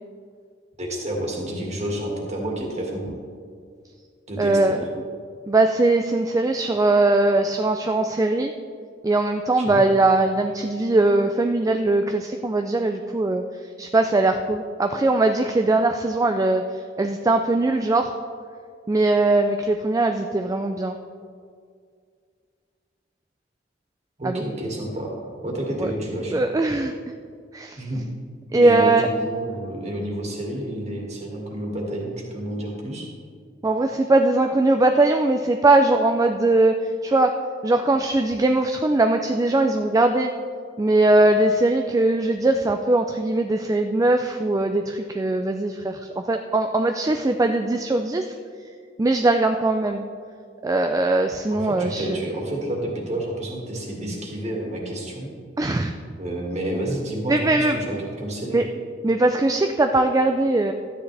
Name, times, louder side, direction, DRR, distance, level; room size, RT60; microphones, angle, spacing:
voice 1, 0.8-3.1 4.3-4.8 9.6-9.8 24.2-25.2 25.4-26.4 27.8-28.0 28.5-33.1 51.5-55.3 56.2-58.6, right 1 dB, 40° right, -1 dB, 2.0 m, -29 dB
voice 2, 4.4-4.8 5.5-8.5 9.0-13.4 13.8-18.1 18.9-21.0 24.2-24.4 25.8-25.9 26.3-26.9 27.5-27.8 28.5-29.1 33.6-36.8 37.0-37.4 37.6-40.3 40.8-48.3 49.0-50.0 50.6-52.2 55.6-55.9 57.3-58.0 58.5-58.7 59.0-60.7, right 2 dB, 20° right, 5 dB, 0.3 m, -20 dB
12.5 x 9.5 x 3.3 m, 2.1 s
head